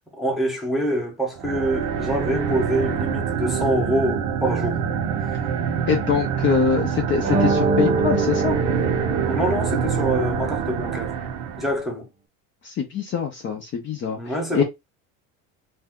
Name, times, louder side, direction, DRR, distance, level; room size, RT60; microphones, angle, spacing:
voice 1, 0.2-4.8 9.2-11.1 11.6-12.1 14.2-14.6, right 1 dB, ahead, 0.8 m, -25 dB
sound 1, 1.4-11.8, right 7 dB, 70° right, 0.7 m, -25 dB
voice 2, 5.9-8.5 12.6-14.6, left 6 dB, 35° left, 0.5 m, -24 dB
sound 2, 7.2-9.9, right 3 dB, 25° right, 0.5 m, -24 dB
2.7 x 2.3 x 3.5 m
cardioid pair, 150°, 34 cm